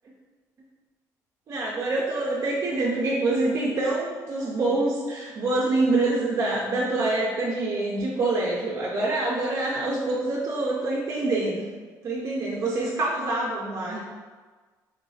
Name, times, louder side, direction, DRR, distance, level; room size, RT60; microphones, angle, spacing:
voice 1, 1.5-11.6 12.0-14.0, right 2 dB, 45° right, -4 dB, 0.4 m, -26 dB
2.9 x 2.1 x 2.7 m, 1.4 s
cardioid pair, 105°, 7 cm